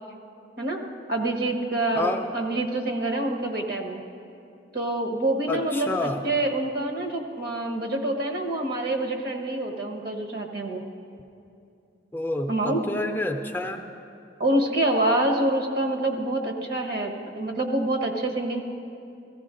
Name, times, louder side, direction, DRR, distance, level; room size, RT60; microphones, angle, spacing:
voice 1, 1.1-4.0 4.7-10.8 12.5-12.8 14.4-18.6, right 1 dB, 55° right, 2 dB, 1.2 m, -26 dB
voice 2, 1.9-2.3 5.5-6.2 12.1-13.9, left 2 dB, 10° left, 4 dB, 0.4 m, -28 dB
15.5 x 15.5 x 3.7 m, 2.5 s
head